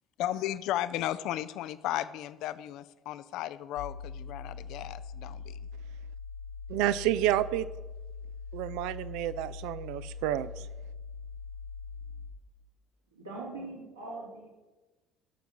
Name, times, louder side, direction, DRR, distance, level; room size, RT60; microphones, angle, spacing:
voice 1, 0.2-5.6, left 13 dB, 55° left, 0.6 m, -35 dB
sound 1, 3.8-12.3, left 5 dB, 75° left, 1.5 m, -42 dB
voice 2, 6.7-7.7 8.5-10.5, right 13 dB, 60° right, 0.5 m, -29 dB
voice 3, 13.1-14.5, right 2 dB, 85° right, 3.4 m, -41 dB
16.5 x 7.0 x 6.2 m
figure-of-eight pair, 55°, 0 cm